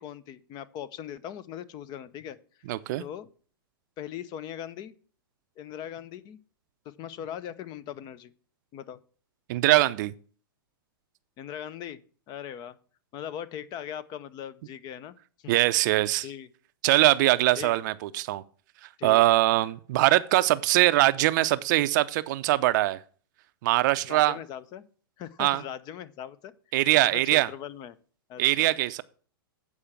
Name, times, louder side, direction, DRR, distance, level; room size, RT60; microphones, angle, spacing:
voice 1, 0.0-2.4 3.0-3.3 4.0-4.9 5.6-6.4 6.8-8.3 8.7-9.0 11.4-12.0 12.3-12.8 13.1-15.1 15.4-15.5 16.2-16.5 17.6-17.8 19.0-19.4 24.1-24.8 25.2-26.5 27.0-28.0 28.3-28.7, left 10 dB, 35° left, 0.7 m, -39 dB
voice 2, 2.7-3.0 9.5-10.1 15.5-16.2 16.8-18.4 19.0-23.0 23.6-24.4 25.4-25.6 26.7-27.5 28.4-29.0, right 17 dB, 50° right, 0.5 m, -22 dB
8.4 x 4.9 x 7.4 m
hypercardioid pair, 110°, 12 cm